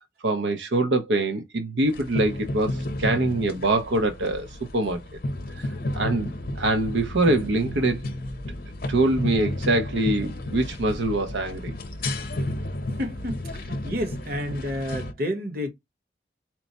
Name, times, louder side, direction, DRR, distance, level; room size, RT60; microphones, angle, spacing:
voice 1, 0.2-5.0 5.6-5.7 5.9-8.0 8.9-11.7, right 2 dB, 90° right, 0.6 m, -24 dB
sound 1, 1.9-15.1, left 1 dB, 55° left, 0.7 m, -32 dB
voice 2, 13.0-15.7, left 1 dB, 55° right, 1.3 m, -30 dB
4.4 x 2.1 x 4.0 m
head